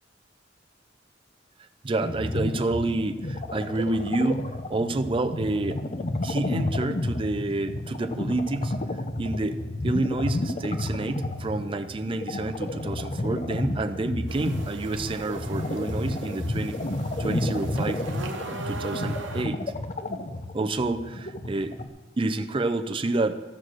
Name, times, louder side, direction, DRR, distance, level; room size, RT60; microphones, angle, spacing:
voice 1, 1.8-5.8 6.2-8.8 9.2-16.8 17.2-18.0 18.7-19.6 20.5-21.8 22.2-23.4, right 2 dB, 30° right, 8 dB, 0.4 m, -28 dB
sound 1, 2.0-21.9, left 1 dB, 35° left, 0.5 m, -31 dB
sound 2, 14.3-19.5, right 3 dB, 80° right, 1.0 m, -39 dB
13.0 x 4.6 x 6.1 m, 1.1 s
head